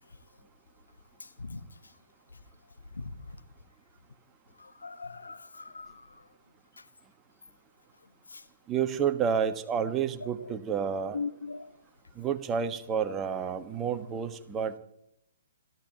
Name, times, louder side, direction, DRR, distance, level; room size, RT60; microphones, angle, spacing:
voice 1, 4.8-5.9 11.1-11.6, left 4 dB, 85° left, 1.3 m, -38 dB
voice 2, 8.7-11.2 12.2-14.7, right 7 dB, 20° right, 1.4 m, -30 dB
29.5 x 14.0 x 3.0 m
figure-of-eight pair, 130°, 0 cm